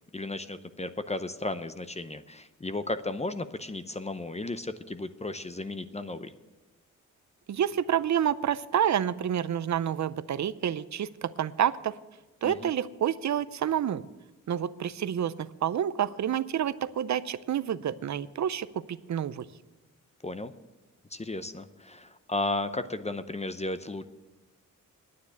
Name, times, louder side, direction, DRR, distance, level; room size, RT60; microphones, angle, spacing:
voice 1, 0.1-6.3 12.4-12.7 20.2-20.5 21.1-24.0, left 2 dB, 20° left, 11 dB, 0.7 m, -34 dB
voice 2, 7.5-11.9 12.4-14.0 14.5-18.8 19.1-19.5, right 9 dB, 60° right, 16 dB, 0.6 m, -28 dB
9.6 x 9.6 x 7.8 m, 1.1 s
cardioid pair, 75°, 32 cm